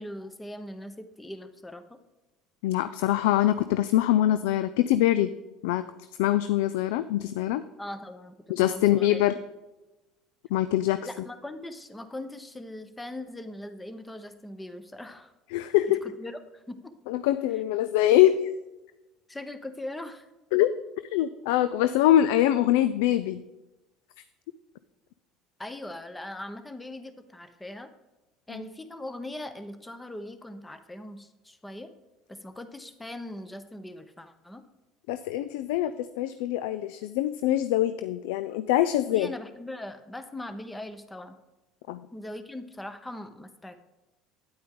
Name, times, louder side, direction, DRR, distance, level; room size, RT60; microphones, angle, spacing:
voice 1, 0.0-2.0 7.8-9.2 11.0-15.3 16.0-16.9 19.3-20.3 25.6-27.9 28.5-31.9 32.3-34.6 39.1-41.4 42.1-43.7, left 1 dB, 10° left, 9 dB, 1.1 m, -40 dB
voice 2, 2.6-5.3 5.6-5.8 6.2-7.6 8.5-9.3 10.5-11.0 15.5-16.1 17.1-18.4 20.5-20.7 21.1-23.4 28.5-28.7 35.1-39.3 41.9-42.0, left 13 dB, 70° left, 13 dB, 0.3 m, -24 dB
9.5 x 8.5 x 3.8 m, 1.1 s
hypercardioid pair, 70°, 0 cm